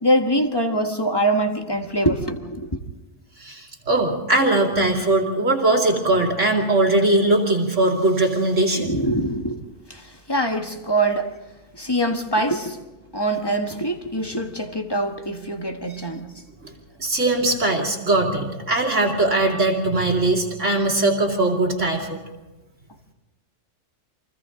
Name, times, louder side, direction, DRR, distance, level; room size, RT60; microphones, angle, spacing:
voice 1, 0.0-2.7 8.7-9.6 9.9-11.3 11.7-12.8 13.1-16.4 17.4-17.6, right 1 dB, 20° left, 4 dB, 1.5 m, -24 dB
voice 2, 3.4-8.9 16.6-16.7 17.0-22.2, right 2 dB, 65° right, -1 dB, 3.0 m, -20 dB
29.0 x 24.0 x 3.8 m, 1.1 s
omnidirectional pair, 1.3 m